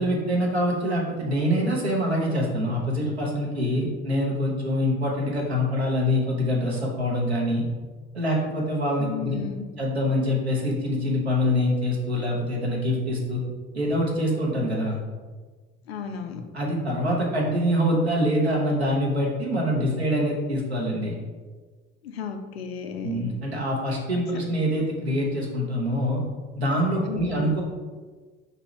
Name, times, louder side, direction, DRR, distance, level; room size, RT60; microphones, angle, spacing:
voice 1, 0.0-7.6 8.1-9.4 9.8-13.4 13.7-15.0 16.5-21.2 23.0-26.2 26.6-27.6, equal, 85° right, -2 dB, 0.8 m, -25 dB
voice 2, 9.0-9.7 15.9-16.4 22.0-23.2 27.1-27.5, left 7 dB, 75° left, 6 dB, 0.5 m, -34 dB
4.5 x 2.6 x 3.1 m, 1.4 s
figure-of-eight pair, 60°, 31 cm